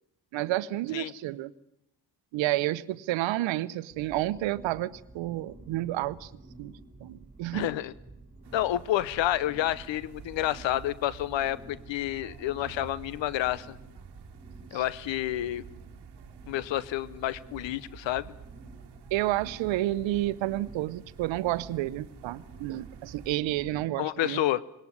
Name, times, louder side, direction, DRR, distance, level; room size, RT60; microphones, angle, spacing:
voice 1, 0.3-1.5 2.3-6.3 6.6-6.7 7.0-7.7 14.7-14.8 19.1-24.4, right 15 dB, 80° right, 0.8 m, -30 dB
sound 1, 3.9-23.9, right 2 dB, 20° right, 3.6 m, -50 dB
voice 2, 7.5-7.9 8.5-13.8 14.7-15.6 16.5-18.3 24.0-24.6, left 13 dB, 75° left, 0.9 m, -29 dB
sound 2, 8.4-23.4, right 8 dB, 60° right, 1.4 m, -50 dB
21.0 x 18.5 x 9.7 m
supercardioid pair, 45°, 44 cm